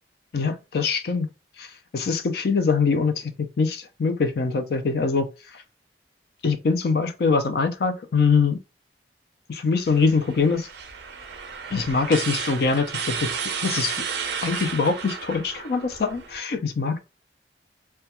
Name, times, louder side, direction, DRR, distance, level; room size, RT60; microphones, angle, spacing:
voice 1, 0.3-1.3 1.6-1.7 1.9-5.3 6.4-8.6 9.5-10.7 11.7-14.0 14.4-17.0, left 4 dB, 55° left, 0.4 m, -23 dB
sound 1, 9.9-16.4, right 6 dB, 65° right, 0.4 m, -33 dB
2.2 x 2.2 x 2.8 m
head